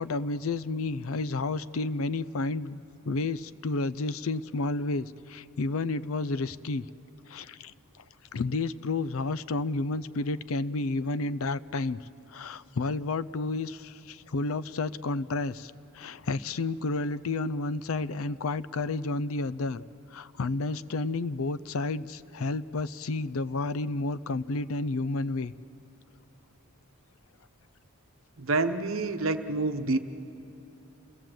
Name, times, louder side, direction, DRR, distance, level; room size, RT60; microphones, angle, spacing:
voice 1, 0.0-6.9 7.3-7.7 8.3-12.0 12.3-19.8 20.1-25.5, left 3 dB, 70° left, 17 dB, 0.5 m, -31 dB
voice 2, 28.4-30.0, right 3 dB, 65° right, 8 dB, 1.0 m, -27 dB
28.5 x 17.0 x 7.7 m, 3.0 s
head